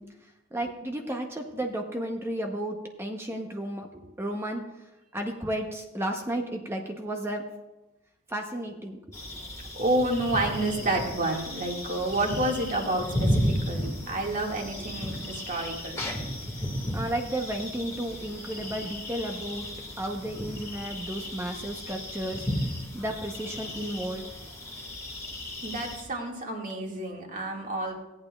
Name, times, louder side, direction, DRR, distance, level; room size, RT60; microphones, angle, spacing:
voice 1, 0.5-4.6 5.1-7.4 8.3-9.0 16.9-19.6 20.0-22.5 22.9-24.3, right 1 dB, 10° right, 3 dB, 0.7 m, -33 dB
sound 1, 9.1-26.0, equal, 15° left, 1.7 m, -34 dB
voice 2, 9.7-16.0 25.6-27.9, right 1 dB, 40° right, 0 dB, 1.8 m, -29 dB
17.0 x 8.8 x 2.3 m, 1.0 s
head